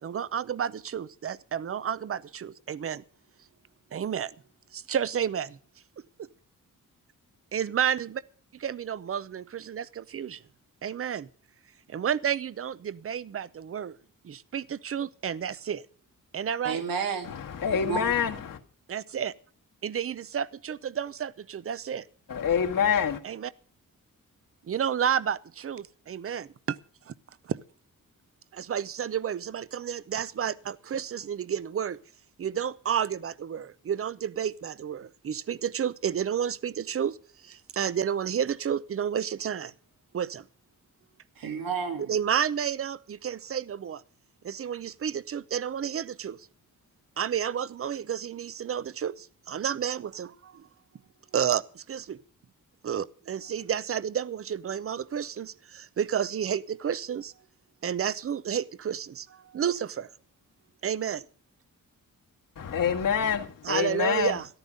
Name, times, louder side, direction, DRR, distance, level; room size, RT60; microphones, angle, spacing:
voice 1, 0.0-3.0 3.9-4.3 4.7-5.6 6.2-6.3 7.5-8.2 8.6-10.4 10.8-11.3 11.9-14.0 14.2-15.8 16.3-16.8 18.9-19.3 19.8-22.1 23.2-23.5 24.7-26.8 27.1-27.2 27.5-27.6 28.5-32.0 32.4-37.2 37.4-39.7 40.1-40.4 42.1-44.0 44.4-46.5 47.2-50.7 51.3-52.2 52.8-57.3 57.8-60.1 60.8-61.2 63.6-64.5, right 8 dB, 40° right, 0.6 m, -31 dB
voice 2, 16.6-17.4 17.7-18.3 41.4-42.1, right 5 dB, 85° right, 2.5 m, -32 dB
voice 3, 17.2-18.6 22.3-23.2 62.5-64.4, left 7 dB, 75° left, 1.8 m, -26 dB
14.0 x 12.5 x 5.2 m
wide cardioid pair, 135°, 33 cm